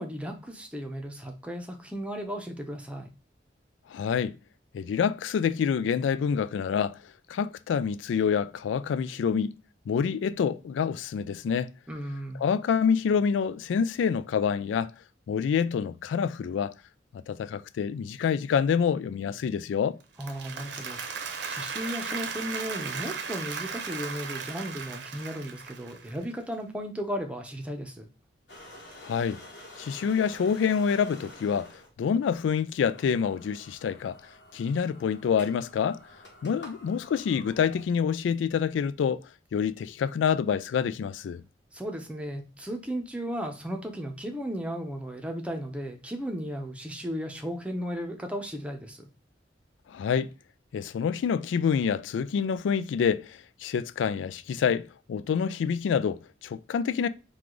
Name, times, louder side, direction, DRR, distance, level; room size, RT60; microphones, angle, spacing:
voice 1, 0.0-3.1 11.9-12.4 20.2-28.1 41.7-49.0, equal, 5° right, 0.7 m, -35 dB
voice 2, 3.9-4.3 4.7-7.0 7.3-9.5 9.9-11.7 12.4-14.9 15.3-16.7 17.3-20.0 29.0-29.4 29.8-31.7 32.0-34.2 34.5-36.0 36.4-39.2 39.5-41.4 49.9-50.3 50.7-57.1, left 7 dB, 90° left, 0.3 m, -27 dB
Applause, 20.0-26.2, right 5 dB, 70° right, 0.8 m, -36 dB
sound 1, 28.5-31.9 32.4-32.5 32.9-38.3, left 1 dB, 65° left, 1.4 m, -49 dB
4.8 x 2.4 x 3.7 m
head